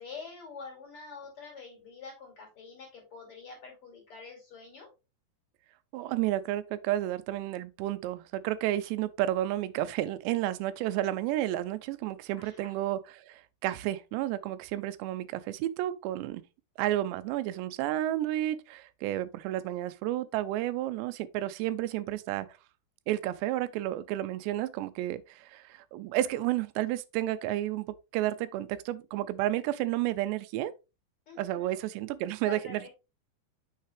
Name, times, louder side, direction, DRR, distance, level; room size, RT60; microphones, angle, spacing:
voice 1, 0.0-4.9 12.4-12.7 31.3-31.8 32.4-32.9, left 4 dB, 35° left, 3.0 m, -46 dB
voice 2, 5.9-16.4 16.8-22.5 23.1-30.7 31.4-32.9, right 14 dB, 90° right, 2.8 m, -31 dB
6.7 x 5.6 x 3.3 m
omnidirectional pair, 4.9 m